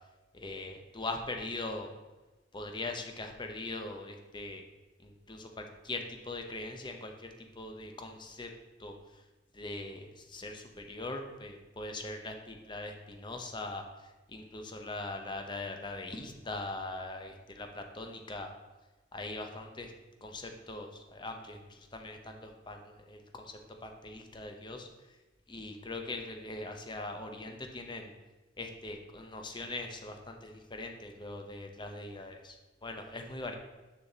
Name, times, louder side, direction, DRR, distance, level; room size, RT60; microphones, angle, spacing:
voice 1, 0.3-1.9 2.5-4.6 5.0-8.5 8.8-8.9 9.5-13.8 14.3-18.5 19.1-19.9 20.2-24.9 25.5-28.1 28.6-33.6, left 2 dB, 25° left, 4 dB, 0.7 m, -41 dB
7.0 x 5.7 x 4.0 m, 1.1 s
head